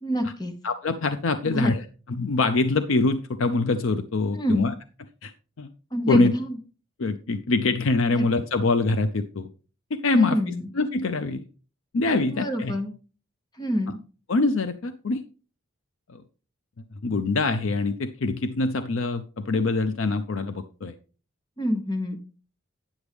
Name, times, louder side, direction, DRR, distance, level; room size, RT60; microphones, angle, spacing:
voice 1, 0.0-0.5 1.4-1.7 4.3-4.7 5.9-6.6 8.1-8.3 10.1-10.7 12.3-12.9 13.6-14.0 21.6-22.2, equal, 20° left, 6 dB, 1.1 m, -26 dB
voice 2, 0.6-1.8 2.1-4.7 5.2-5.3 5.6-5.7 6.1-6.3 7.0-9.5 9.9-10.4 10.7-11.4 11.9-12.7 14.3-15.2 16.1-16.2 17.0-20.9, left 3 dB, 65° left, 9 dB, 0.5 m, -24 dB
9.7 x 7.0 x 3.5 m, 0.37 s
head